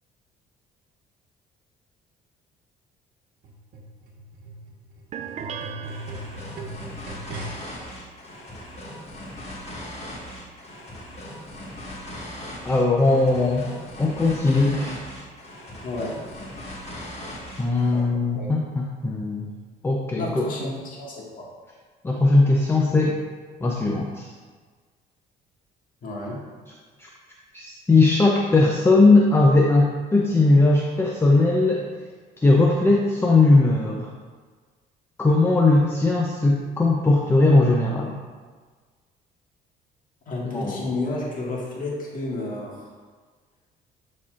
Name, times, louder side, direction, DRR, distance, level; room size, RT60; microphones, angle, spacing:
sound 1, 3.4-7.8 8.6-8.7, right 1 dB, 65° right, 1.4 m, -39 dB
sound 2, 5.1-6.9, right 8 dB, 40° right, 0.4 m, -37 dB
sound 3, 5.8-18.1, left 1 dB, 40° left, 1.6 m, -39 dB
voice 1, 12.6-13.6 14.0-15.0 17.6-19.5 19.8-20.5 22.0-23.2 23.6-24.3 27.0-27.1 27.5-31.9 32.4-34.1 35.2-38.2 40.4-40.8, left 2 dB, 15° left, -1 dB, 0.6 m, -19 dB
voice 2, 15.8-16.2 17.9-18.1 18.3-18.6 20.2-21.4 26.0-26.4 40.3-42.9, left 2 dB, 55° left, -3 dB, 1.8 m, -31 dB
12.0 x 4.2 x 2.5 m, 1.5 s
cardioid pair, 110°, 17 cm